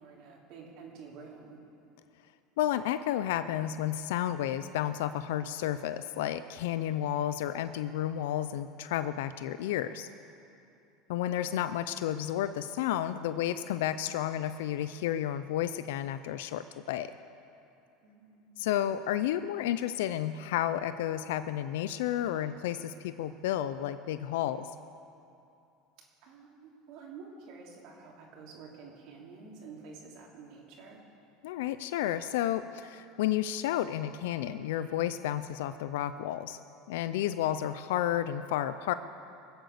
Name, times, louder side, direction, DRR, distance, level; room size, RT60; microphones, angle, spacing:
voice 1, 0.0-1.6 18.0-19.1 26.2-31.0, right 5 dB, 65° right, -1 dB, 3.2 m, -50 dB
voice 2, 2.6-10.1 11.1-17.1 18.6-24.7 31.4-36.6 36.9-38.9, left 11 dB, 80° left, 12 dB, 0.4 m, -31 dB
22.0 x 8.0 x 6.8 m, 2.7 s
supercardioid pair, 115°, 0 cm